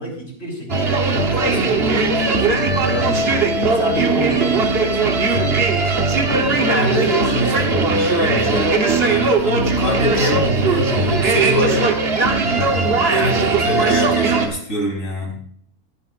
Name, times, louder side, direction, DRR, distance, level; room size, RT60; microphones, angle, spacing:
voice 1, 0.0-2.6 2.8-3.3 3.7-5.8 6.2-7.1 12.2-12.6, equal, 45° left, 0 dB, 3.7 m, -28 dB
sound 1, 0.7-14.5, right 3 dB, 45° right, 1.3 m, -18 dB
voice 2, 6.7-11.9 13.1-15.4, equal, 60° left, -2 dB, 4.3 m, -23 dB
18.5 x 10.0 x 2.5 m, 0.63 s
omnidirectional pair, 1.5 m